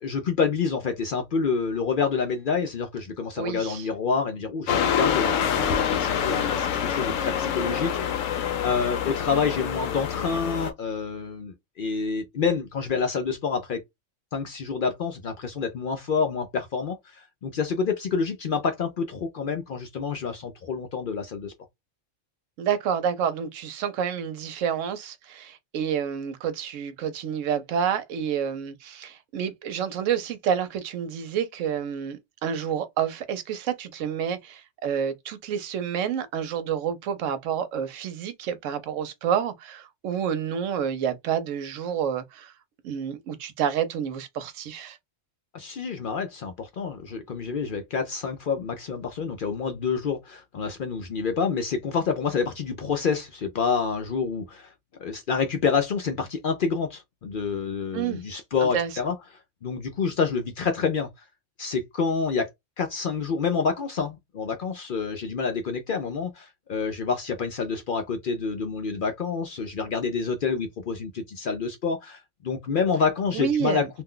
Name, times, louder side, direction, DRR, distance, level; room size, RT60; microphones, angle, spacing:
voice 1, 0.0-13.8 14.3-21.5 45.5-54.7 55.0-59.2 59.6-61.1 61.6-62.5 62.8-73.9, left 5 dB, 60° left, 0.6 m, -28 dB
voice 2, 3.4-3.9 22.6-42.5 42.8-45.0 57.9-58.2 58.6-58.9 73.3-73.9, right 8 dB, 85° right, 1.0 m, -29 dB
sound 1, 4.7-10.7, left 8 dB, 90° left, 1.0 m, -26 dB
2.5 x 2.2 x 3.7 m
omnidirectional pair, 1.3 m